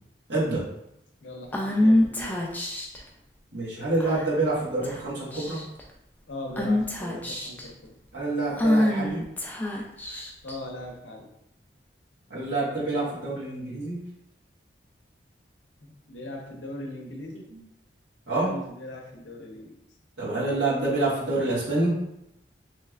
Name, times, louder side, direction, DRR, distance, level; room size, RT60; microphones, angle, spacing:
voice 1, 0.3-0.6 3.5-5.6 8.1-9.2 12.3-14.0 17.5-17.6 18.3-18.5 20.2-22.0, right 2 dB, 75° right, -6 dB, 1.2 m, -27 dB
voice 2, 1.2-2.4 6.3-7.9 10.4-11.3 15.8-17.5 18.3-19.7, left 1 dB, 85° left, 2 dB, 0.6 m, -39 dB
Female speech woman speaking / Whispering, 1.5-3.0 4.0-4.4 4.8-5.0 5.3-5.8 6.6-7.7 8.6-10.5, left 1 dB, 10° left, 0.3 m, -25 dB
3.2 x 3.1 x 2.3 m, 0.81 s
head